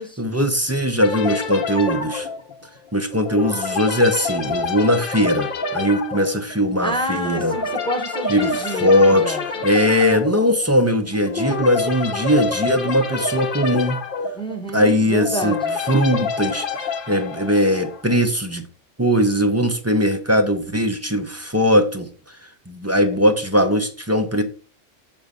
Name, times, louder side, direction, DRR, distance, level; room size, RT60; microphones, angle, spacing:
voice 1, 0.2-2.3 2.9-7.5 8.3-9.4 9.6-14.0 14.7-15.6 15.9-16.7 17.1-18.7 19.0-22.1 22.7-24.4, equal, 15° right, 0.6 m, -19 dB
sound 1, 1.0-18.2, left 4 dB, 50° left, 0.9 m, -28 dB
voice 2, 6.8-9.6 14.3-15.8, right 1 dB, 5° left, 1.0 m, -28 dB
7.0 x 5.3 x 3.5 m
omnidirectional pair, 1.3 m